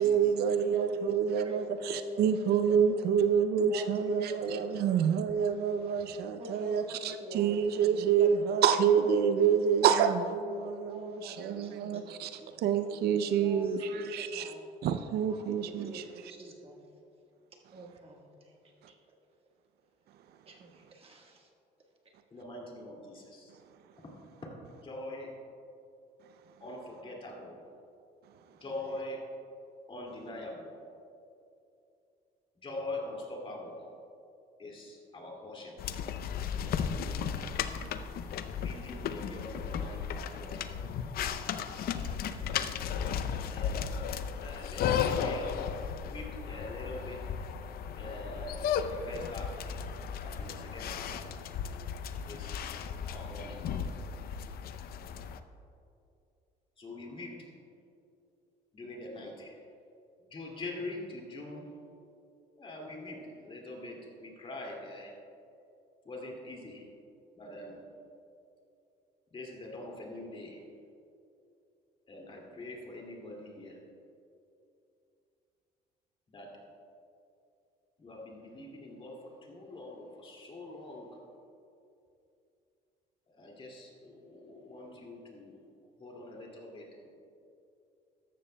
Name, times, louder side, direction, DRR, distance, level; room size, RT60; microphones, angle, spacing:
voice 1, 0.0-14.5 14.8-16.0, right 7 dB, 70° right, 9 dB, 0.5 m, -27 dB
voice 2, 1.4-2.2 3.7-5.0 5.4-5.9 6.4-7.6 8.2-8.7 9.4-9.5 9.8-9.9 10.9-12.7 13.3-14.7 15.3-16.8 17.7-18.6 18.9-19.0 20.5-21.5, equal, 35° right, 0 dB, 1.5 m, -45 dB
voice 3, 22.3-23.5 24.0-24.2 24.4-24.5 24.8-25.3 26.6-27.6 28.5-29.2 29.9-30.7 32.6-33.8 34.6-35.8 36.5-37.8 38.6-40.7 41.8-42.8 43.5-43.8 44.4-45.6 46.0-47.2 47.9-49.6 50.2-51.2 52.2-52.6 53.0-53.6 56.8-57.5 58.7-59.6 60.3-61.7 62.6-65.2 66.0-66.8 67.3-67.8 69.3-70.6 72.1-73.8 76.3-76.6 78.0-81.1 83.3-87.1, left 1 dB, 30° left, -1 dB, 2.3 m, -44 dB
sound 1, 35.8-55.4, left 7 dB, 65° left, 0.6 m, -35 dB
14.0 x 12.0 x 2.2 m, 2.6 s
cardioid pair, 110°, 17 cm